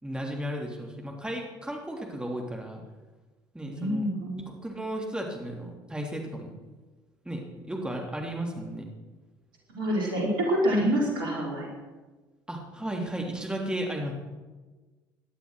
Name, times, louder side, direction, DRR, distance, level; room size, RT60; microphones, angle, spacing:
voice 1, 0.0-2.8 3.5-4.1 4.5-6.5 7.2-7.4 7.7-8.8 12.5-14.1, right 1 dB, 5° right, 0 dB, 3.4 m, -34 dB
voice 2, 3.7-4.4 9.7-11.7, equal, 75° right, -2 dB, 5.3 m, -26 dB
18.0 x 12.0 x 6.5 m, 1.3 s
figure-of-eight pair, 55°, 12 cm